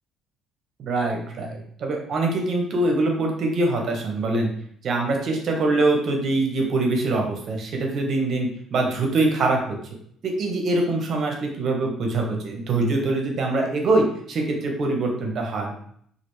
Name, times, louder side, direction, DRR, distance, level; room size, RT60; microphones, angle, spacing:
voice 1, 0.8-4.5 4.8-9.8 10.2-15.7, right 2 dB, 40° right, 1 dB, 0.6 m, -24 dB
3.2 x 2.4 x 3.1 m, 0.64 s
cardioid pair, 180°, 0 cm